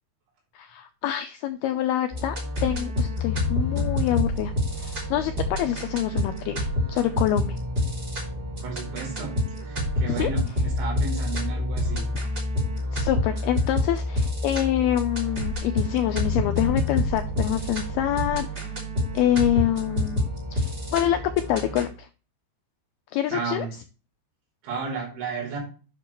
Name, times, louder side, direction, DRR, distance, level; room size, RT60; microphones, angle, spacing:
voice 1, 0.6-2.4 2.6-7.6 10.1-10.3 12.9-18.7 19.1-20.3 20.5-21.2 21.5-22.1 23.1-23.7, left 12 dB, 85° left, 8 dB, 2.2 m, -26 dB
sound 1, 2.1-21.9, left 1 dB, 25° right, 3.0 m, -28 dB
voice 2, 8.6-12.1 23.3-23.7 24.6-25.6, right 5 dB, 85° right, 0 dB, 7.1 m, -33 dB
11.5 x 6.7 x 3.1 m, 0.35 s
omnidirectional pair, 5.2 m